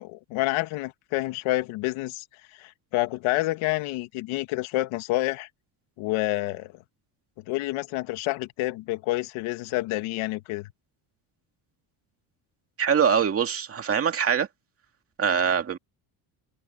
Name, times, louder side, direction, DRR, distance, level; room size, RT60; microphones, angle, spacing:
voice 1, 0.0-2.2 2.5-5.5 6.0-6.7 7.5-10.7, left 18 dB, 75° left, 1.9 m, -28 dB
voice 2, 12.8-14.5 15.2-15.8, right 7 dB, 25° right, 2.3 m, -23 dB
cardioid pair, 160°, 50 cm